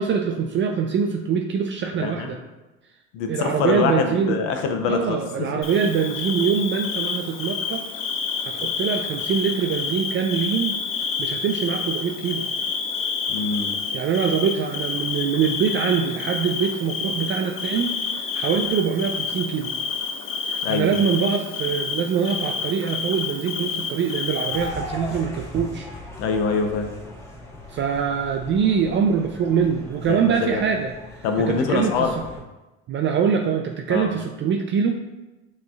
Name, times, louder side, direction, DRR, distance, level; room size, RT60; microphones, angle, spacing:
voice 1, 0.0-2.4 3.3-4.4 4.9-7.8 8.4-10.8 11.2-12.5 13.9-19.7 20.4-25.9 27.7-30.9 31.4-32.1 32.9-35.0, right 6 dB, 40° right, 3 dB, 0.4 m, -24 dB
voice 2, 2.0-2.3 3.1-5.5 13.3-13.7 20.6-20.9 26.2-26.9 30.1-30.6 31.2-32.1 33.9-34.1, left 5 dB, 80° left, 5 dB, 0.7 m, -24 dB
Bird / Cricket, 5.6-24.7, left 6 dB, 45° left, 0.6 m, -29 dB
sound 1, 24.5-32.4, left 2 dB, 10° left, 1.3 m, -38 dB
5.8 x 3.2 x 2.4 m, 1.1 s
supercardioid pair, 85°, 30 cm